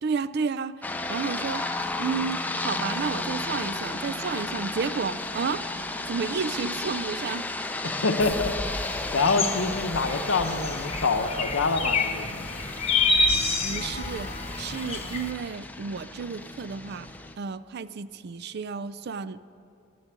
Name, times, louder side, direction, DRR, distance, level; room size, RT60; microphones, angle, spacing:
voice 1, 0.0-0.7 1.1-1.6 2.0-5.6 6.1-7.4 13.2-14.3 14.6-17.1 17.4-19.4, right 5 dB, 50° right, 15 dB, 0.4 m, -31 dB
sound 1, 0.8-17.4, left 2 dB, 10° left, 0.5 m, -34 dB
voice 2, 8.0-8.5 9.1-12.5, left 3 dB, 70° left, 6 dB, 0.8 m, -26 dB
sound 2, 8.2-15.3, left 3 dB, 30° left, 1.0 m, -29 dB
12.0 x 10.0 x 8.1 m, 2.6 s
head